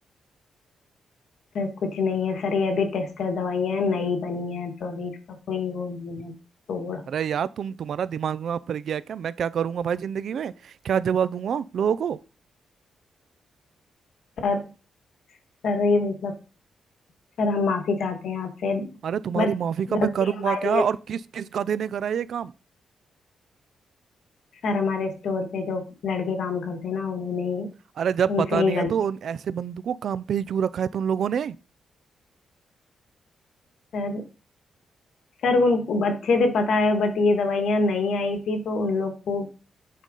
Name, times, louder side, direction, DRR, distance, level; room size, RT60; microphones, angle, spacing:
voice 1, 1.5-6.3 6.7-7.0 14.4-14.6 15.6-16.3 17.4-18.9 19.4-19.5 19.9-20.1 20.4-20.8 24.6-27.7 28.3-28.9 33.9-34.2 35.4-39.5, left 3 dB, 70° left, 1.9 m, -25 dB
voice 2, 7.1-12.2 19.0-22.5 28.0-31.6, right 8 dB, 65° right, 0.4 m, -27 dB
9.1 x 4.0 x 5.4 m
cardioid pair, 130°, 0 cm